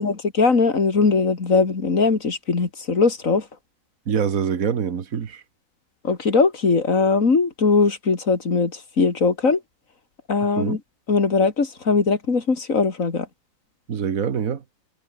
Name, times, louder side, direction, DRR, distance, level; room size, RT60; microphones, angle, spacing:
voice 1, 0.0-3.4 6.0-8.7 9.0-9.6 10.3-10.8 11.1-13.3, left 4 dB, 70° left, 2.9 m, -20 dB
voice 2, 4.1-5.4 10.4-10.8 13.9-14.6, right 7 dB, 80° right, 1.8 m, -25 dB
omnidirectional pair, 1.5 m